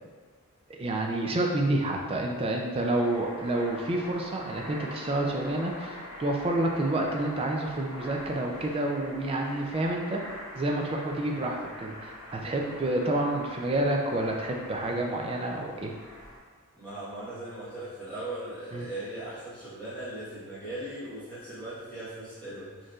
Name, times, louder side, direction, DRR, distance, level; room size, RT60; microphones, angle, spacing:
voice 1, 0.7-10.2 10.6-15.9 18.7-18.9, right 1 dB, 25° right, 1 dB, 0.4 m, -29 dB
sound 1, 2.7-16.4, left 1 dB, 80° left, 0.9 m, -44 dB
voice 2, 16.8-22.9, right 1 dB, 5° left, -13 dB, 1.2 m, -39 dB
4.4 x 3.1 x 2.4 m, 1.5 s
head